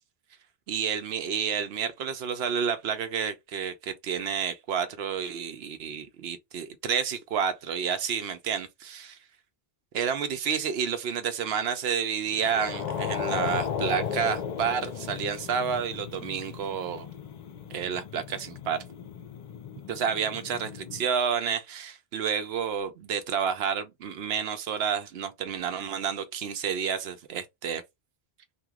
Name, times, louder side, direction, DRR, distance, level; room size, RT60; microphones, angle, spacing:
voice 1, 0.7-9.2 9.9-17.1 17.7-18.8 19.9-27.8, right 7 dB, 80° right, 0.9 m, -30 dB
sound 1, 12.3-21.1, left 7 dB, 50° left, 0.5 m, -36 dB
2.9 x 2.3 x 3.5 m
omnidirectional pair, 1.0 m